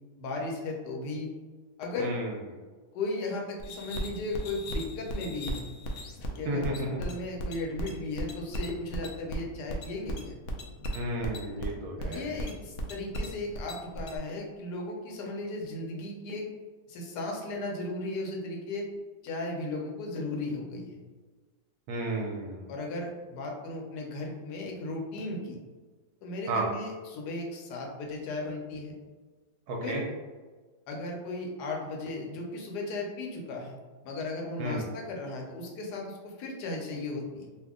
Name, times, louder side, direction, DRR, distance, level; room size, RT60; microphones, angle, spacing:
voice 1, 0.2-1.3 1.8-2.1 2.9-5.7 6.4-10.3 12.0-16.5 16.9-18.9 19.2-21.0 22.7-25.6 26.2-28.9 29.8-30.1 30.9-33.8 34.0-37.5, left 2 dB, 75° left, 0 dB, 1.2 m, -36 dB
voice 2, 2.0-2.4 6.5-7.0 10.9-12.4 21.9-22.7 26.5-26.7 29.7-30.0 34.6-34.8, right 1 dB, 70° right, -1 dB, 1.0 m, -32 dB
sound 1, 3.6-14.2, equal, 90° left, 0.6 m, -36 dB
2.7 x 2.5 x 3.5 m, 1.4 s
omnidirectional pair, 1.9 m